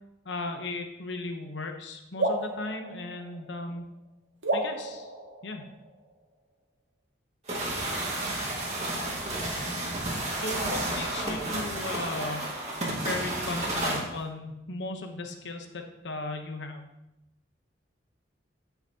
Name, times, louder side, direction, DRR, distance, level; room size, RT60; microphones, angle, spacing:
voice 1, 0.2-3.8 4.5-5.1 5.4-5.6 10.3-12.5 12.8-16.9, left 2 dB, 80° left, 5 dB, 1.0 m, -36 dB
sound 1, 2.2-3.8 4.4-6.1, right 2 dB, 90° right, 1.7 m, -32 dB
sound 2, 7.5-14.0, right 1 dB, 35° right, 2.0 m, -31 dB
14.0 x 5.8 x 2.9 m, 0.90 s
head